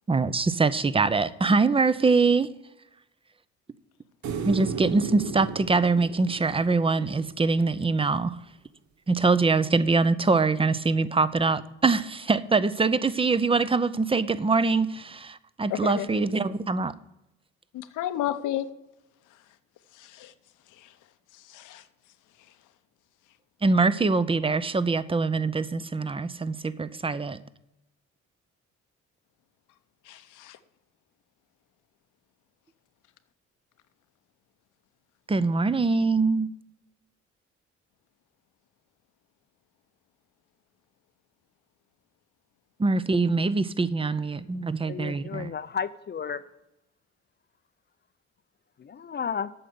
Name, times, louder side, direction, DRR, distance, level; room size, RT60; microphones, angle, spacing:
voice 1, 0.1-2.5 4.4-8.4 9.1-16.9 23.6-27.4 35.3-36.5 42.8-45.5, right 4 dB, 20° right, 0.6 m, -24 dB
sound 1, 4.2-7.5 10.1-10.2, right 6 dB, 70° right, 1.2 m, -34 dB
voice 2, 15.7-16.1 17.7-18.7 19.9-20.3 20.7-20.9 21.3-21.8 30.0-30.6, left 12 dB, 85° left, 0.9 m, -32 dB
voice 3, 44.9-46.4 48.8-49.5, left 6 dB, 35° left, 0.5 m, -33 dB
8.8 x 6.5 x 7.9 m
cardioid pair, 90°, 30 cm